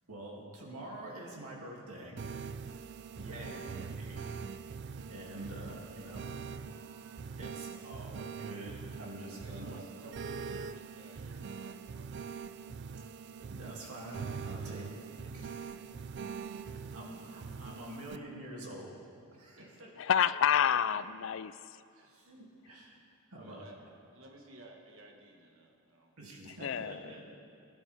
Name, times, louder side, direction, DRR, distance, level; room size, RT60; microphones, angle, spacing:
voice 1, 0.1-2.2 3.2-3.7 4.1-4.3 5.1-9.8 13.5-15.0 15.3-15.5 16.7-18.9 19.3-19.9 22.0-23.0 23.3-23.6 26.2-27.3, right 1 dB, 90° right, -3 dB, 2.6 m, -46 dB
sound 1, 2.2-18.2, right 5 dB, 50° right, 0.3 m, -43 dB
voice 2, 3.1-4.2 7.4-7.9 9.3-12.3 14.6-14.7 16.2-16.3 19.5-20.0 21.9-22.1 23.4-23.8 24.1-26.1, right 1 dB, 65° right, 1 dB, 1.5 m, -56 dB
voice 3, 20.0-21.6 26.5-27.0, left 8 dB, 60° left, 15 dB, 0.3 m, -28 dB
21.0 x 11.0 x 3.5 m, 2.4 s
head